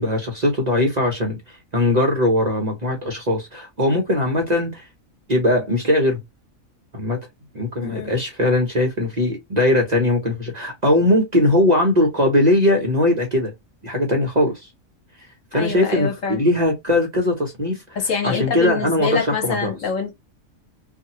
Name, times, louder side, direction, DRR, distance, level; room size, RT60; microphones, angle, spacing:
voice 1, 0.0-4.9 5.3-6.2 6.9-7.2 7.5-13.5 13.8-14.7 15.5-17.8 18.2-19.7, left 1 dB, 40° right, 0.7 m, -20 dB
voice 2, 7.8-8.1 15.5-16.4 17.9-20.1, left 5 dB, 65° left, 1.3 m, -25 dB
2.8 x 2.5 x 2.8 m
omnidirectional pair, 1.5 m